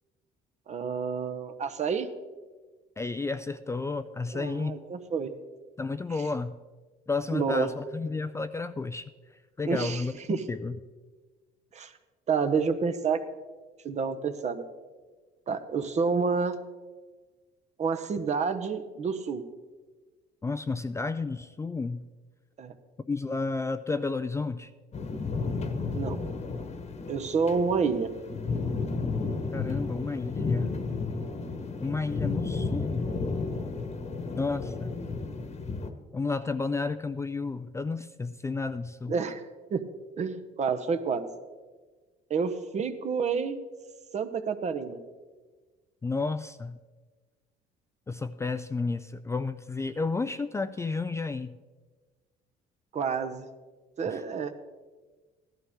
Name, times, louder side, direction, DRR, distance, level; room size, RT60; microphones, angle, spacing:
voice 1, 0.7-2.1 4.3-5.3 7.3-7.7 9.7-10.0 10.3-10.4 11.7-11.9 12.3-13.2 13.8-14.6 15.5-16.6 17.8-19.4 22.6-22.7 25.9-26.2 27.1-28.1 39.1-39.4 39.7-39.8 40.2-41.3 42.3-43.6 44.1-45.0 52.9-53.5 54.0-54.5, right 5 dB, 45° right, 8 dB, 1.0 m, -29 dB
voice 2, 3.0-4.8 5.8-6.6 7.1-9.1 9.6-10.8 20.4-22.1 23.1-24.7 29.5-30.7 31.8-33.2 34.3-35.0 36.1-39.1 46.0-46.8 48.1-51.5 54.1-54.2, left 3 dB, 15° left, 11 dB, 0.4 m, -32 dB
sound 1, 24.9-35.9, left 4 dB, 40° left, 1.2 m, -32 dB
15.5 x 11.5 x 3.6 m, 1.3 s
cardioid pair, 110°, 17 cm